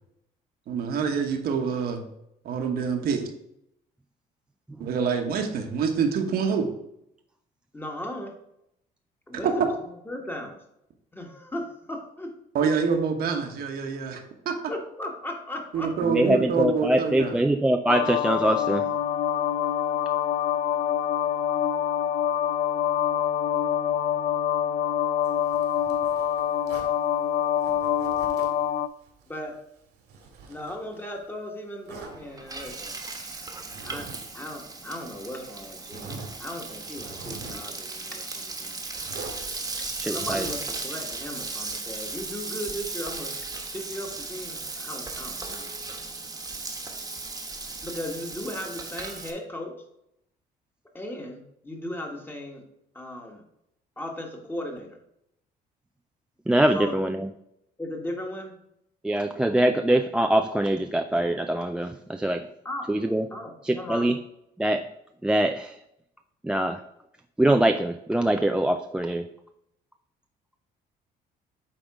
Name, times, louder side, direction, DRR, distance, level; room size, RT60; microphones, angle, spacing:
voice 1, 0.7-2.0 2.4-3.2 4.8-6.6 9.4-9.5 12.5-14.2 14.4-14.5 15.7-17.4, right 6 dB, 65° right, 4 dB, 1.2 m, -26 dB
voice 2, 7.7-8.4 9.3-9.7 10.0-10.6 11.1-12.3 12.6-12.7 14.7-15.9 29.3-29.6 30.5-32.9 33.8-34.1 34.3-38.8 40.1-45.7 47.8-49.8 50.9-52.6 52.9-53.4 54.0-55.0 56.7-57.1 57.8-58.5 62.6-62.9 63.3-64.1, left 1 dB, 10° left, 2 dB, 1.4 m, -37 dB
voice 3, 16.1-18.8 40.0-40.5 56.5-57.3 59.0-62.4 62.9-63.3 63.6-64.1 64.6-64.8 65.2-65.8 66.4-66.8 67.4-69.2, right 1 dB, 5° right, 7 dB, 0.3 m, -23 dB
sound 1, 17.9-28.9, left 9 dB, 65° left, 0.4 m, -25 dB
Zipper (clothing), 25.2-27.0 27.6-28.6 29.0-31.3 31.9-32.2 33.6-34.2 34.5-34.6 35.3-35.4 35.9-36.3 36.8-37.7 39.0-39.4 40.1-40.7, right 4 dB, 85° right, 2.2 m, -43 dB
Frying (food), 32.0-49.3, right 3 dB, 20° right, 1.2 m, -36 dB
8.8 x 3.6 x 4.8 m, 0.79 s
cardioid pair, 110°, 17 cm